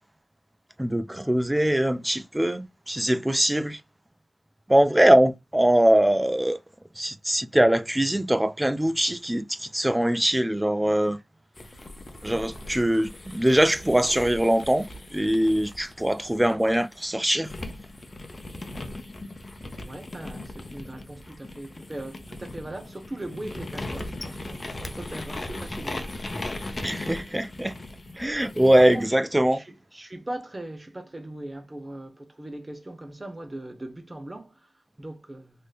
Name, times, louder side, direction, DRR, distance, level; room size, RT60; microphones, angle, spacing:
voice 1, 0.8-3.8 4.7-6.6 7.0-11.2 12.2-17.5 26.8-27.8 28.2-29.6, right 1 dB, 10° right, 0.4 m, -22 dB
sound 1, 11.6-17.0 17.4-29.1, left 2 dB, 40° left, 0.7 m, -38 dB
voice 2, 19.8-26.3 28.8-29.3 29.5-34.6 35.0-35.5, right 1 dB, 30° right, 0.9 m, -39 dB
3.3 x 2.7 x 2.3 m
cardioid pair, 65°, 0 cm